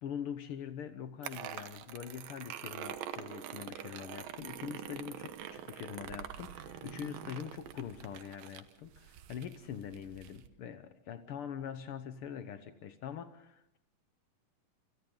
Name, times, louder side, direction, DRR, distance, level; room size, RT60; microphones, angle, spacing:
voice 1, 0.0-13.8, left 8 dB, 90° left, 9 dB, 1.2 m, -43 dB
sound 1, 1.2-10.5, right 10 dB, 85° right, 2.9 m, -45 dB
28.0 x 28.0 x 3.9 m, 0.74 s
omnidirectional pair, 3.9 m